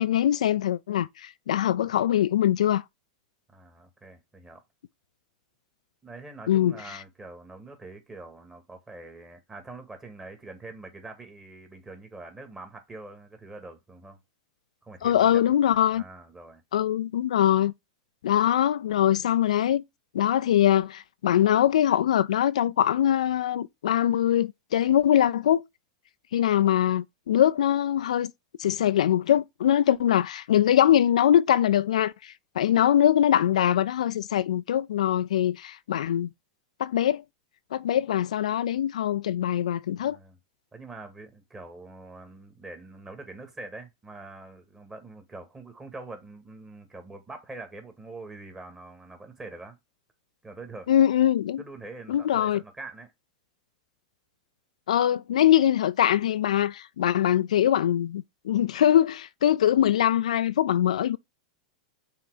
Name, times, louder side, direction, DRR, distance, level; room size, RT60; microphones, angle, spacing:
voice 1, 0.0-2.8 6.5-6.7 15.0-16.0 16.7-17.7 18.2-19.8 20.1-25.6 26.3-28.3 28.6-36.3 36.8-37.2 37.7-40.2 50.9-51.6 52.1-52.6 54.9-61.2, left 11 dB, 85° left, 0.4 m, -22 dB
voice 2, 3.5-4.6 6.0-14.2 14.8-15.5 15.9-16.6 40.0-40.4 40.7-49.8 50.4-50.9 51.6-53.1, right 2 dB, 15° right, 2.0 m, -44 dB
5.7 x 4.0 x 4.9 m
hypercardioid pair, 120°, 4 cm